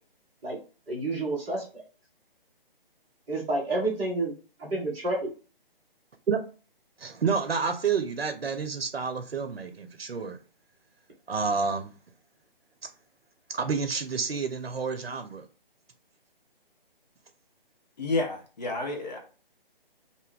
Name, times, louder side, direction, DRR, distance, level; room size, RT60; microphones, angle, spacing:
voice 1, 0.9-1.7 3.3-4.3 4.6-5.3, right 2 dB, 5° right, 0.6 m, -29 dB
voice 2, 7.0-10.4 11.3-11.9 13.5-15.4, right 5 dB, 85° right, 0.5 m, -29 dB
voice 3, 18.0-19.2, left 2 dB, 45° left, 0.7 m, -30 dB
2.6 x 2.2 x 3.5 m
figure-of-eight pair, 145°, 29 cm